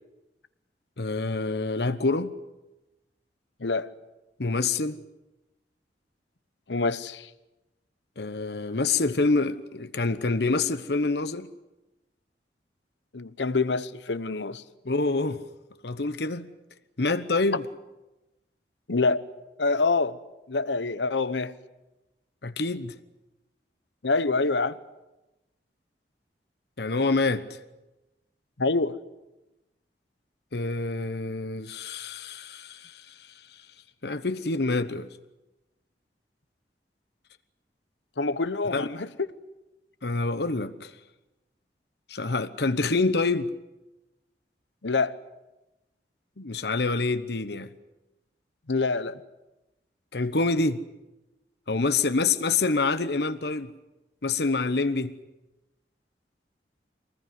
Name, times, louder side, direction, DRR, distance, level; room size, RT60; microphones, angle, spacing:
voice 1, 1.0-2.3 4.4-5.0 8.2-11.5 14.8-15.4 15.8-16.5 17.0-17.6 22.4-22.9 26.8-27.5 30.5-33.3 34.0-35.1 38.7-38.9 40.0-40.9 42.1-43.5 46.4-47.7 50.1-50.8 51.7-53.7 54.2-55.1, left 3 dB, 65° left, 1.0 m, -26 dB
voice 2, 3.6-3.9 6.7-7.3 13.1-14.6 18.9-19.2 19.6-20.2 20.5-21.5 24.0-24.8 28.6-29.0 38.2-39.1 44.8-45.1 48.7-49.1, left 3 dB, 90° left, 1.0 m, -26 dB
24.0 x 20.0 x 9.6 m
head